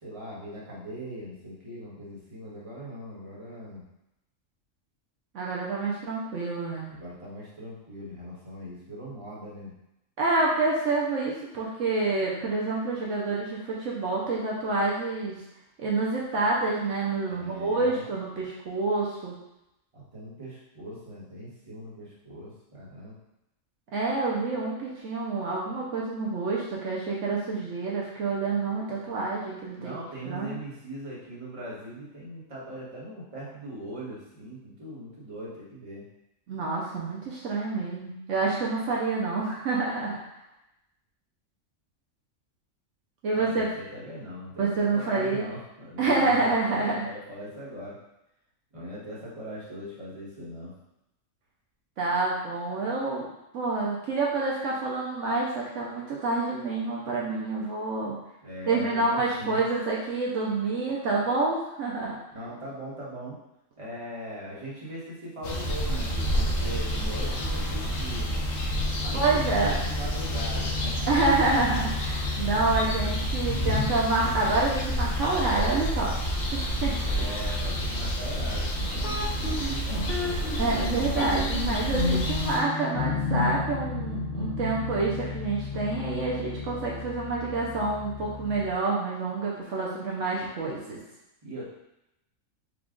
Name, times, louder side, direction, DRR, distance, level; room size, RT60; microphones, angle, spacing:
voice 1, 0.0-3.8 6.9-9.7 17.3-18.1 19.9-23.2 29.8-36.0 43.3-48.0 48.7-50.7 58.4-59.6 62.3-63.4 63.8-68.3 69.0-71.1 77.0-80.4 91.4-91.6, equal, 25° right, -7 dB, 1.2 m, -40 dB
voice 2, 5.3-6.9 10.2-15.4 15.8-19.4 23.9-30.0 30.3-30.5 36.5-40.2 43.2-43.7 44.6-45.5 46.0-47.1 52.0-53.3 53.5-58.2 58.7-62.2 69.1-69.8 71.1-76.1 76.5-77.0 80.6-91.0, right 3 dB, 70° right, -4 dB, 1.0 m, -28 dB
sound 1, 65.4-82.6, equal, 80° left, 1.2 m, -29 dB
sound 2, 79.0-88.8, left 3 dB, 55° left, 1.0 m, -32 dB
5.0 x 2.3 x 3.7 m, 0.88 s
omnidirectional pair, 1.4 m